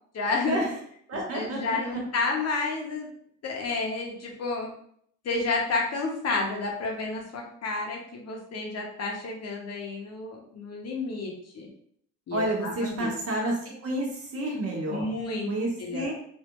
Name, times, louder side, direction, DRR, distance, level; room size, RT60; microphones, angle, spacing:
voice 1, 0.1-0.6 1.3-3.1 3.4-4.7 5.2-11.7 12.3-13.1 14.9-15.5 15.8-16.1, left 3 dB, 55° left, 0 dB, 1.0 m, -30 dB
voice 2, 1.1-2.0 12.3-15.1 15.5-16.1, right 1 dB, 50° right, -3 dB, 1.3 m, -30 dB
3.2 x 2.6 x 3.0 m, 0.65 s
cardioid pair, 90°, 30 cm